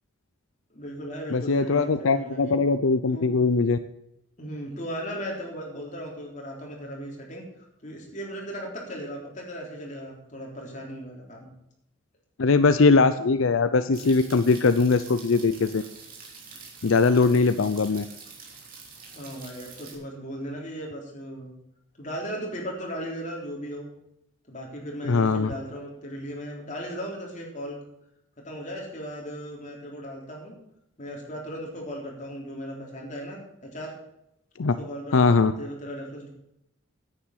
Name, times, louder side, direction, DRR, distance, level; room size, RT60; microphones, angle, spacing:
voice 1, 0.7-2.6 3.1-3.3 4.4-11.5 19.1-21.5 22.0-23.9 24.5-27.8 28.4-30.5 31.0-33.9 34.8-36.3, equal, 35° left, -1 dB, 3.7 m, -37 dB
voice 2, 1.3-3.8 12.4-15.8 16.8-18.0 25.1-25.5 34.6-34.8 35.1-35.5, left 4 dB, 80° left, 11 dB, 0.6 m, -21 dB
sound 1, 13.9-19.9, right 5 dB, 45° right, 2.9 m, -46 dB
10.0 x 9.1 x 7.3 m, 0.81 s
head